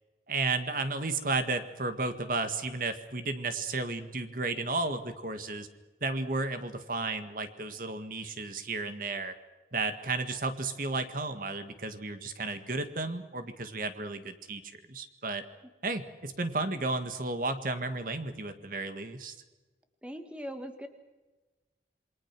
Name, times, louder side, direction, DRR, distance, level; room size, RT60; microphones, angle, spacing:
voice 1, 0.3-5.7 6.0-9.3 9.7-14.6 14.9-15.4 15.8-19.4, right 3 dB, 50° right, 9 dB, 1.8 m, -33 dB
voice 2, 20.0-20.9, equal, 5° right, 7 dB, 1.6 m, -40 dB
28.0 x 22.5 x 6.1 m, 1.2 s
head